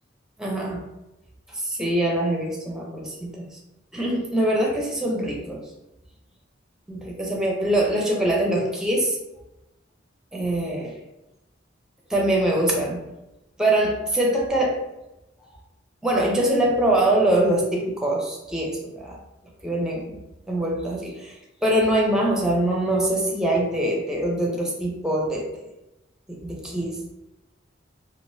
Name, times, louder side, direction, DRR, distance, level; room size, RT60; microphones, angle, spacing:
voice 1, 0.4-0.8 1.5-3.5 3.9-5.6 6.9-9.2 10.3-10.9 12.1-13.0 13.6-14.8 16.0-19.2 19.6-20.2 20.5-25.7 26.3-27.0, right 1 dB, 5° right, -1 dB, 0.6 m, -23 dB
3.7 x 2.8 x 2.7 m, 0.96 s
head